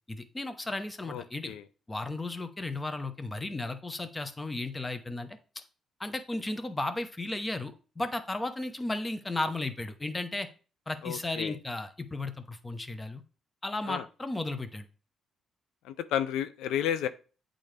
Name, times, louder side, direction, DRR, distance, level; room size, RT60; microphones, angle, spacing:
voice 1, 0.1-1.6 1.9-5.4 6.0-10.5 10.9-13.2 13.6-14.8, left 2 dB, 20° left, 10 dB, 0.8 m, -34 dB
voice 2, 1.1-1.6 11.0-11.6 13.9-14.0 15.8-17.1, left 10 dB, 90° left, 11 dB, 0.4 m, -32 dB
8.6 x 3.8 x 3.3 m, 0.36 s
cardioid pair, 90°, 0 cm